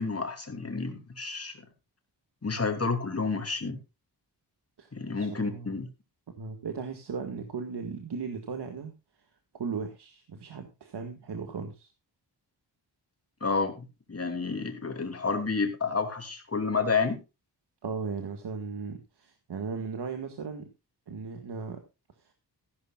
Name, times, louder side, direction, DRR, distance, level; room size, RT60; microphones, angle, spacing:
voice 1, 0.0-1.6 2.4-3.8 4.9-5.9 13.4-17.2, left 4 dB, 35° left, 5 dB, 2.8 m, -30 dB
voice 2, 4.8-5.7 6.4-8.9 9.5-11.9 17.8-20.7 21.1-21.8 22.2-22.3, right 5 dB, 70° right, 6 dB, 1.9 m, -37 dB
15.0 x 12.0 x 2.4 m, 0.27 s
wide cardioid pair, 120°, 42 cm